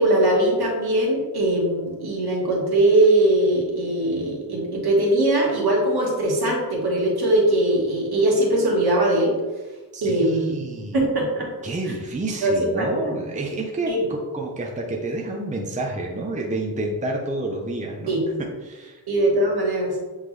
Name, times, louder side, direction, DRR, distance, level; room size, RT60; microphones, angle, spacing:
voice 1, 0.0-9.3 10.0-10.6 10.9-11.5 11.9-12.0 12.4-13.1 13.9-14.1 18.1-18.3 19.1-20.0, right 1 dB, 70° right, -3 dB, 1.9 m, -21 dB
voice 2, 9.9-11.0 11.6-18.1 18.6-19.0, right 2 dB, 20° right, 0 dB, 0.7 m, -29 dB
7.8 x 3.6 x 3.3 m, 1.2 s
wide cardioid pair, 135°, 40 cm